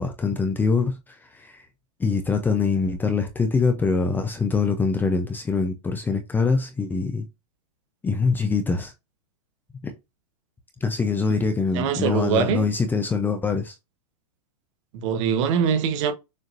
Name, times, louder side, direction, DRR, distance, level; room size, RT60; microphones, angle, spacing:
voice 1, 0.0-1.6 2.0-7.2 8.0-8.9 9.8-9.9 10.8-13.7, left 4 dB, 10° left, 0.6 m, -24 dB
voice 2, 11.7-12.7 14.9-16.1, right 7 dB, 50° right, 1.2 m, -23 dB
6.6 x 2.9 x 2.6 m
hypercardioid pair, 140°, 20 cm